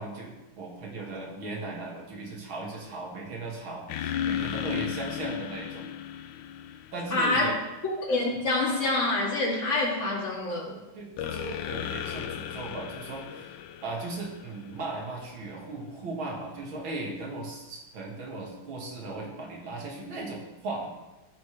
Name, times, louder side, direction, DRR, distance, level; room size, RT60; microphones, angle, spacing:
voice 1, 0.0-5.9 6.9-7.6 10.9-20.9, right 2 dB, 85° right, -1 dB, 2.8 m, -37 dB
sound 1, 3.9-7.6 11.2-15.1, left 9 dB, 75° left, 1.3 m, -35 dB
voice 2, 7.1-7.6 7.8-10.7, left 2 dB, 40° left, -4 dB, 2.6 m, -26 dB
16.0 x 6.9 x 3.4 m, 1.1 s
omnidirectional pair, 2.1 m